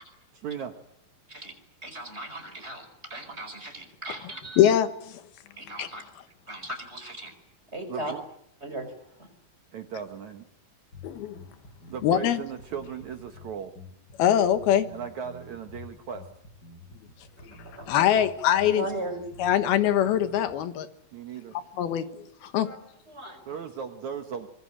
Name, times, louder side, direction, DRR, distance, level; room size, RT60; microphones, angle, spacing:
voice 1, 0.4-0.7 7.9-8.2 9.7-10.5 11.9-13.7 14.9-16.3 21.1-21.6 23.5-24.5, right 7 dB, 60° right, 6 dB, 2.2 m, -37 dB
voice 2, 1.8-4.7 5.6-6.0 6.5-7.3 7.7-8.1 8.6-9.3 17.4-17.9 18.7-19.3 22.6-22.8 23.1-23.3, right 1 dB, 15° right, 6 dB, 4.8 m, -38 dB
voice 3, 4.6-4.9 5.8-5.9 11.0-11.4 12.0-12.4 14.2-14.9 17.9-18.8 19.4-20.9 21.8-22.7, left 10 dB, 75° left, 10 dB, 3.2 m, -23 dB
sound 1, 10.9-20.5, left 2 dB, 25° left, 7.3 m, -48 dB
24.5 x 23.0 x 8.8 m, 0.76 s
omnidirectional pair, 4.5 m